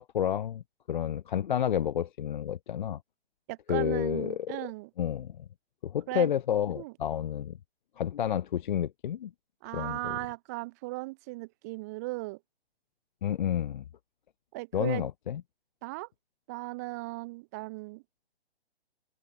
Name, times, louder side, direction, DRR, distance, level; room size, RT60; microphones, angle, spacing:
voice 1, 0.0-3.0 3.7-4.7 5.0-5.4 5.8-7.6 8.0-9.3 9.7-10.2 13.2-13.8 14.7-15.4, left 10 dB, 50° left, 0.5 m, -30 dB
voice 2, 3.5-4.9 6.1-6.3 6.8-6.9 9.6-12.4 14.5-15.1 15.8-16.1 16.5-18.0, right 23 dB, 15° right, 0.7 m, -37 dB
hypercardioid pair, 160°, 31 cm